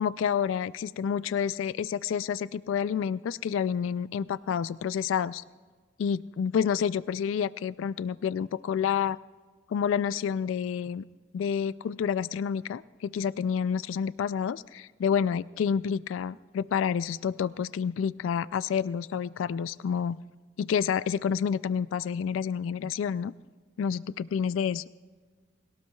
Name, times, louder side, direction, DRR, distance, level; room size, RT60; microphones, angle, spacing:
voice 1, 0.0-5.4 6.0-9.2 9.7-11.0 11.3-20.2 20.6-23.3 23.8-24.8, left 7 dB, 80° left, 17 dB, 0.3 m, -29 dB
21.0 x 17.5 x 2.3 m, 1.5 s
head